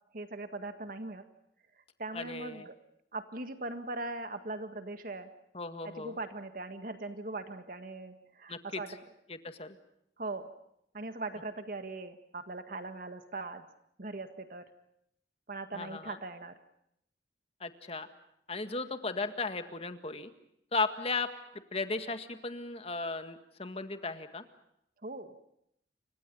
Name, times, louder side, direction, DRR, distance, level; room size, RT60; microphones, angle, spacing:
voice 1, 0.1-1.2 2.0-2.7 3.1-5.3 5.8-9.0 10.2-10.5 10.9-13.7 14.0-14.6 15.5-16.5 25.0-25.4, right 2 dB, 50° right, 8 dB, 1.7 m, -40 dB
voice 2, 2.1-2.7 5.5-6.2 8.5-8.8 9.3-9.8 15.7-16.2 17.6-18.1 18.5-20.3 20.7-24.4, left 3 dB, 35° left, 9 dB, 1.8 m, -36 dB
29.0 x 25.5 x 5.5 m, 0.74 s
head